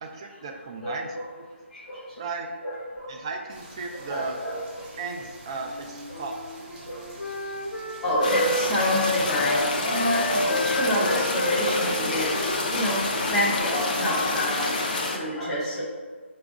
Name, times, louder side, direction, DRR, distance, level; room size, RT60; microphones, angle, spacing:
voice 1, 0.0-1.5 2.2-2.5 3.1-4.4 5.0-6.4, right 4 dB, 25° right, 2 dB, 0.4 m, -35 dB
voice 2, 0.8-1.2 1.7-2.0 2.6-3.1 3.9-4.8 6.1-6.2 6.9-7.0 8.0-12.3 12.7-13.0 13.3-15.8, left 1 dB, 5° left, -10 dB, 0.7 m, -28 dB
sound 1, 3.5-13.6, right 1 dB, 40° right, 0.9 m, -46 dB
Wind instrument woodwind instrument, 5.6-9.5 9.9-14.3, left 1 dB, 70° left, 0.8 m, -32 dB
sound 2, 8.2-15.2, left 2 dB, 40° left, 0.5 m, -28 dB
4.8 x 2.4 x 3.5 m, 1.5 s
figure-of-eight pair, 160°, 7 cm